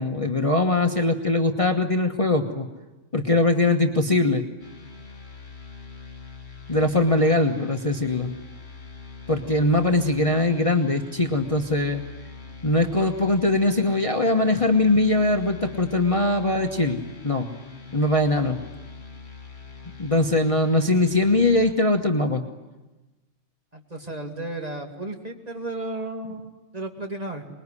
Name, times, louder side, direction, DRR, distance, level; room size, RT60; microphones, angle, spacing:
voice 1, 0.0-2.7 3.1-4.4 6.7-8.3 9.3-12.0 12.6-17.0 17.2-17.5 17.9-18.6 20.0-22.4, left 2 dB, 25° left, 5 dB, 1.2 m, -21 dB
sound 1, 4.6-21.7, left 4 dB, 60° left, 2.4 m, -44 dB
voice 2, 23.7-27.5, right 2 dB, 30° right, 3 dB, 2.4 m, -34 dB
25.5 x 21.0 x 9.8 m, 1.1 s
omnidirectional pair, 1.3 m